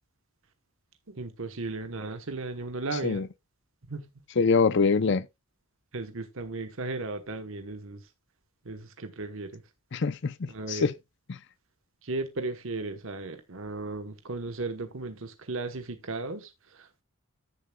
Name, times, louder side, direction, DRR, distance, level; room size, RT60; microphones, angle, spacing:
voice 1, 1.1-3.2 3.9-4.1 5.9-8.0 8.6-9.6 10.5-10.8 12.0-17.0, right 3 dB, 65° right, 1.0 m, -36 dB
voice 2, 4.4-5.3 9.9-10.9 11.3-11.4, left 4 dB, 50° left, 0.5 m, -24 dB
14.5 x 6.9 x 2.2 m
head